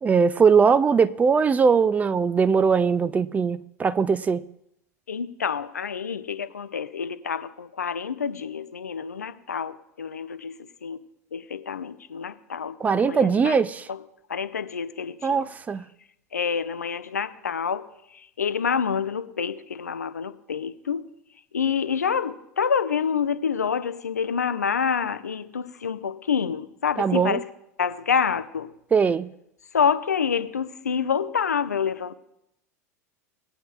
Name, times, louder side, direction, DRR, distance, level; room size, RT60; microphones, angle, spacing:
voice 1, 0.0-4.4 12.8-13.9 15.2-15.8 27.0-27.4 28.9-29.3, right 5 dB, 15° right, 0.3 m, -20 dB
voice 2, 5.1-11.0 11.3-13.6 13.9-14.0 14.3-15.5 16.3-21.1 21.5-27.5 27.8-28.7 29.7-32.1, left 6 dB, 80° left, 0.5 m, -27 dB
19.0 x 8.9 x 2.4 m
figure-of-eight pair, 80°, 9 cm